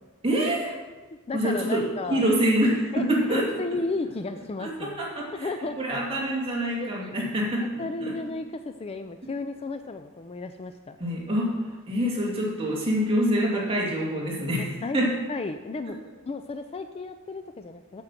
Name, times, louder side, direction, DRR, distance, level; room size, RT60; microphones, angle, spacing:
voice 1, 0.2-0.8 1.3-3.5 4.6-5.5 5.8-8.1 11.0-15.1, right 1 dB, 25° right, -4 dB, 2.6 m, -26 dB
voice 2, 1.1-2.2 2.9-5.1 5.3-5.8 6.8-7.3 7.8-11.0 14.6-16.0 16.3-18.0, left 3 dB, 30° left, 8 dB, 0.4 m, -33 dB
8.8 x 7.7 x 5.9 m, 1.3 s
head